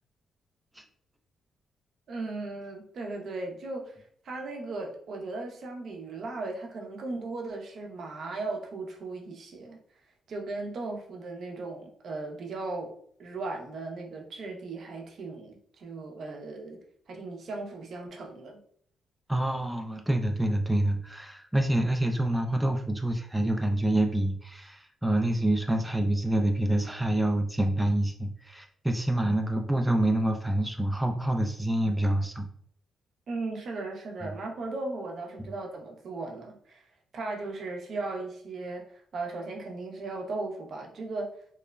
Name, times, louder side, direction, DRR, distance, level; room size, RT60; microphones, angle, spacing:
voice 1, 2.1-3.9 4.2-9.8 10.3-18.6 33.3-36.8 37.1-41.3, right 3 dB, 65° right, 1 dB, 0.5 m, -37 dB
voice 2, 19.3-32.5 34.2-34.4, right 1 dB, 5° right, 4 dB, 0.3 m, -27 dB
3.0 x 2.0 x 2.2 m, 0.64 s
cardioid pair, 75°, 0 cm